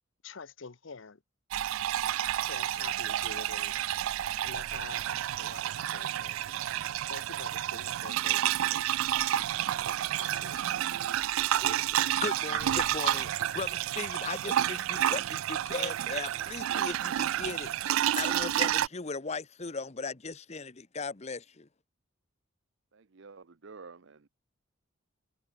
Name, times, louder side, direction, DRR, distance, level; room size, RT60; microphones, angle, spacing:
voice 1, 0.2-1.2 2.4-4.0 4.4-6.7 7.1-8.9 10.2-10.7, left 4 dB, 65° left, 0.9 m, -47 dB
sound 1, 1.5-18.9, right 12 dB, 75° right, 0.3 m, -30 dB
voice 2, 11.5-21.7, left 4 dB, 30° left, 0.9 m, -38 dB
voice 3, 22.9-24.3, right 4 dB, 60° right, 0.7 m, -50 dB
head